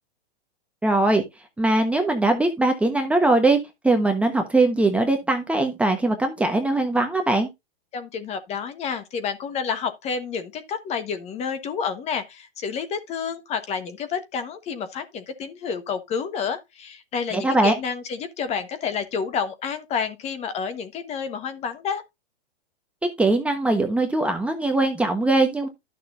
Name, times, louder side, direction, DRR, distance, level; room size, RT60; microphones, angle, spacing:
voice 1, 0.8-1.2 1.6-3.6 3.8-7.5 17.3-17.7 23.2-25.7, right 2 dB, 5° right, 1.1 m, -21 dB
voice 2, 7.9-22.0, left 6 dB, 20° left, 1.3 m, -29 dB
12.0 x 6.7 x 2.6 m
hypercardioid pair, 150°, 32 cm